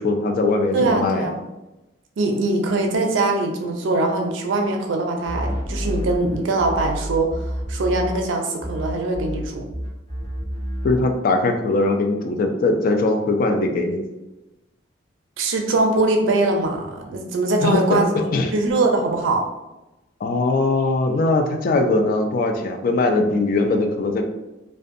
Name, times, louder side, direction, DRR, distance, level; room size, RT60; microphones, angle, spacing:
voice 1, 0.0-1.3 10.8-14.0 17.6-18.5 20.2-24.2, left 2 dB, 50° left, 4 dB, 0.3 m, -20 dB
voice 2, 0.7-1.4 2.2-9.6 15.4-18.1 18.5-19.5, right 2 dB, 80° right, 3 dB, 0.4 m, -22 dB
sound 1, 5.2-8.3 8.6-11.1, equal, 25° left, 0.7 m, -29 dB
2.5 x 2.1 x 2.5 m, 0.99 s
head